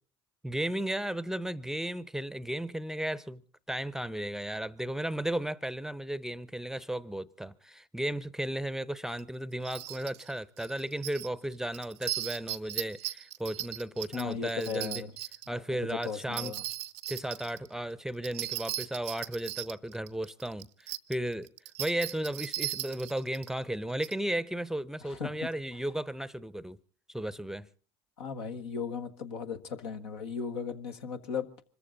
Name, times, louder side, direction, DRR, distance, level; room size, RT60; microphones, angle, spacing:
voice 1, 0.4-3.4 3.7-15.0 15.5-16.6 17.1-21.5 21.8-26.8 27.1-27.7, right 1 dB, 5° right, 0.7 m, -35 dB
sound 1, 9.2-9.3 9.6-10.3 10.6-11.3 11.7-15.5 16.0-17.7 18.2-21.1 21.5-23.5 24.0-24.1, right 15 dB, 80° right, 0.7 m, -37 dB
voice 2, 14.1-15.1 15.5-15.6 15.9-16.6 25.0-25.3 28.2-31.6, left 6 dB, 80° left, 1.5 m, -37 dB
25.0 x 14.5 x 3.9 m
hypercardioid pair, 70°, 14 cm